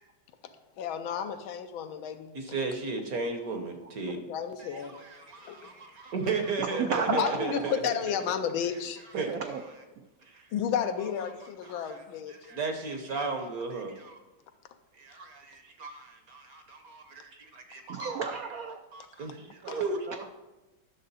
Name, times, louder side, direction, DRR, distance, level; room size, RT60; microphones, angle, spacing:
voice 1, 0.8-2.4 4.1-5.0 5.4-5.6 7.1-9.0 10.5-12.4 19.7-19.8, left 8 dB, 85° left, 8 dB, 1.5 m, -32 dB
voice 2, 2.3-4.2 4.6-7.9 9.2-9.4 10.2-10.5 11.6-12.0 12.3-14.2 14.9-18.4 18.9-20.2, right 4 dB, 55° right, 5 dB, 1.2 m, -35 dB
voice 3, 6.6-7.7 9.1-9.6 17.9-18.8 19.4-20.3, right 6 dB, 80° right, 6 dB, 0.7 m, -33 dB
10.5 x 6.4 x 4.1 m, 1.1 s
omnidirectional pair, 2.2 m